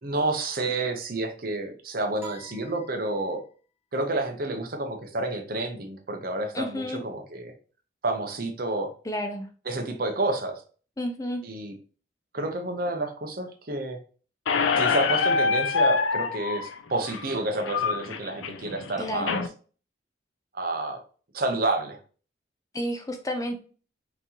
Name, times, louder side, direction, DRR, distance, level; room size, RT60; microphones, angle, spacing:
voice 1, 0.0-3.4 3.9-7.5 8.0-8.9 9.7-10.6 11.4-11.7 12.3-14.0 14.8-19.4 20.5-21.0 21.3-22.0, right 2 dB, 50° right, 5 dB, 0.8 m, -29 dB
sound 1, 2.2-3.6, right 3 dB, 10° right, 1.0 m, -46 dB
voice 2, 6.5-7.0 9.0-9.5 11.0-11.4 19.0-19.4 22.7-23.6, equal, 20° left, 5 dB, 0.5 m, -31 dB
Squeak, 14.5-19.5, left 5 dB, 90° left, 0.6 m, -26 dB
5.9 x 2.9 x 2.9 m, 0.39 s
head